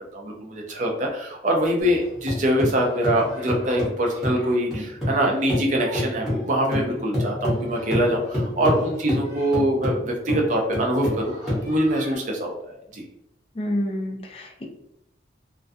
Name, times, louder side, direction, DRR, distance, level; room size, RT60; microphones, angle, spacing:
voice 1, 0.1-13.0, equal, 40° right, 0 dB, 0.5 m, -24 dB
sound 1, 1.8-5.2 5.5-12.2, left 1 dB, ahead, 0.8 m, -28 dB
voice 2, 13.6-14.6, left 1 dB, 30° left, 0 dB, 0.4 m, -28 dB
2.3 x 2.2 x 2.5 m, 0.79 s
head